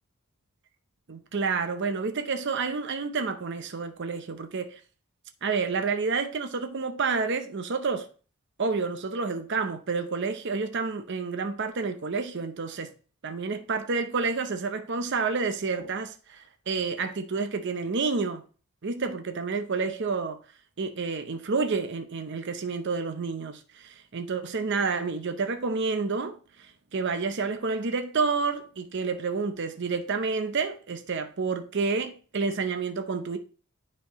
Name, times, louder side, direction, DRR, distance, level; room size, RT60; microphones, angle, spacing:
voice 1, 1.1-4.8 5.4-8.1 8.6-12.9 13.2-18.4 18.8-20.4 20.8-33.4, right 4 dB, 55° right, 0.6 m, -29 dB
9.8 x 4.2 x 3.0 m
head